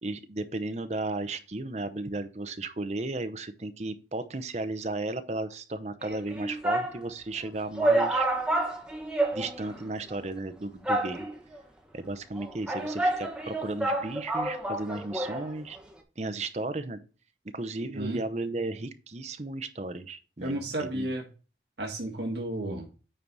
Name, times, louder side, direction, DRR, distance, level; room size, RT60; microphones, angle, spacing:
voice 1, 0.0-8.3 9.3-11.3 11.9-15.8 16.2-17.0 17.4-21.1, right 2 dB, 40° right, 11 dB, 0.7 m, -34 dB
sound 1, 6.0-7.0 7.4-7.5 7.8-9.8 10.1-10.2 10.8-11.6 12.3-15.5 15.8-15.9, right 2 dB, 5° right, 1.1 m, -29 dB
voice 2, 20.4-21.3 21.8-22.9, right 1 dB, 75° right, 0 dB, 1.6 m, -32 dB
9.0 x 4.7 x 4.0 m, 0.34 s
head